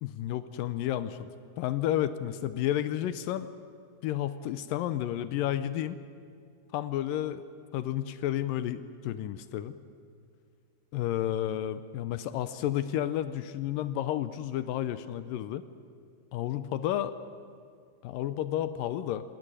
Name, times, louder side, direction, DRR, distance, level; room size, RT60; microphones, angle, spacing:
voice 1, 0.0-1.3 1.6-3.5 4.0-6.0 6.7-7.4 7.7-9.8 10.9-15.6 16.3-17.1 18.0-19.2, left 12 dB, 75° left, 13 dB, 2.1 m, -31 dB
18.5 x 18.5 x 10.0 m, 2.3 s
omnidirectional pair, 4.5 m